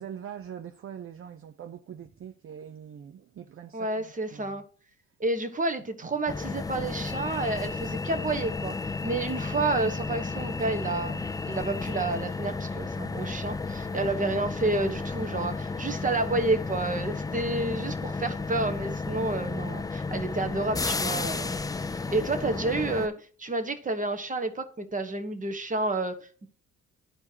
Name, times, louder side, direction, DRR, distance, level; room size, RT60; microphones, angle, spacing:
voice 1, 0.0-4.6 6.0-6.1 14.0-14.2, right 8 dB, 45° right, 0.6 m, -43 dB
voice 2, 3.7-4.6 5.2-8.7 9.0-21.5 22.1-26.5, right 2 dB, 25° right, 1.3 m, -30 dB
sound 1, 6.3-23.1, left 4 dB, 10° left, 0.4 m, -33 dB
12.0 x 4.3 x 2.9 m
cardioid pair, 90°, 30 cm